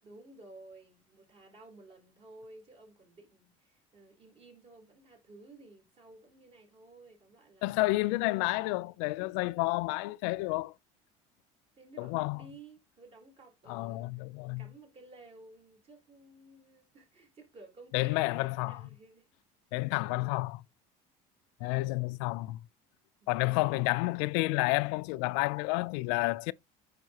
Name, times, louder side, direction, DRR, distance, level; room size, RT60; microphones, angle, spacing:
voice 1, 0.0-7.8 8.3-9.0 9.3-9.6 11.8-14.3 14.6-19.4 20.0-20.3 21.7-22.0 23.2-24.0, right 2 dB, 40° right, 3.8 m, -55 dB
voice 2, 7.6-10.7 12.0-12.4 13.7-14.7 17.9-18.8 19.7-20.6 21.6-22.6 23.3-26.5, left 22 dB, 90° left, 0.5 m, -30 dB
9.4 x 5.1 x 2.9 m
cardioid pair, 135°, 15 cm